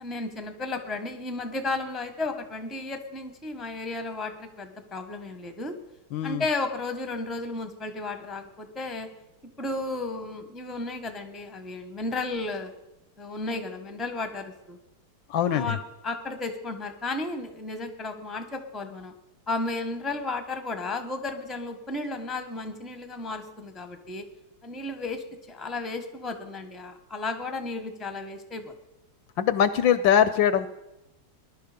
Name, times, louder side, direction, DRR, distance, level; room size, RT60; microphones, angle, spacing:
voice 1, 0.0-5.7 6.2-9.1 9.6-12.7 13.2-14.8 15.5-15.8 16.0-19.1 19.5-24.3 24.6-28.7, left 2 dB, ahead, 7 dB, 1.0 m, -33 dB
voice 2, 6.1-6.4 15.3-15.8 29.4-30.7, left 9 dB, 75° left, 13 dB, 1.3 m, -22 dB
19.5 x 11.5 x 5.1 m, 0.93 s
omnidirectional pair, 2.3 m